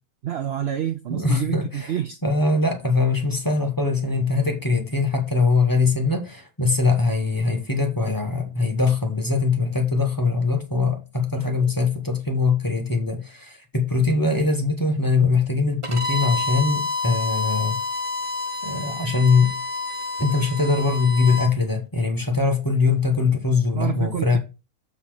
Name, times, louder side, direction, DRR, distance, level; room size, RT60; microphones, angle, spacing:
voice 1, 0.2-2.2 23.7-24.4, right 10 dB, 80° right, 0.5 m, -28 dB
voice 2, 1.1-1.9 2.2-17.8 18.6-19.5 20.2-24.4, left 4 dB, 15° left, 1.0 m, -22 dB
Bowed string instrument, 15.8-21.5, left 3 dB, 30° right, 0.6 m, -28 dB
7.2 x 4.1 x 4.7 m
omnidirectional pair, 1.6 m